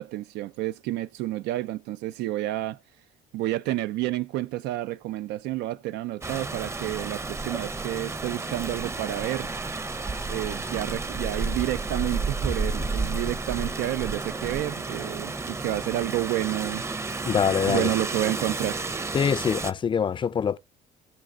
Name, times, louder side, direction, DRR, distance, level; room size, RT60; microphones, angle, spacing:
voice 1, 0.0-2.8 3.3-9.5 10.3-16.8 17.7-18.8, right 15 dB, 85° right, 0.4 m, -30 dB
Rain, 6.2-19.7, right 3 dB, 15° right, 0.6 m, -31 dB
voice 2, 17.3-17.9 19.1-20.6, left 7 dB, 30° left, 0.4 m, -24 dB
18.0 x 6.5 x 2.4 m
cardioid pair, 110°, 17 cm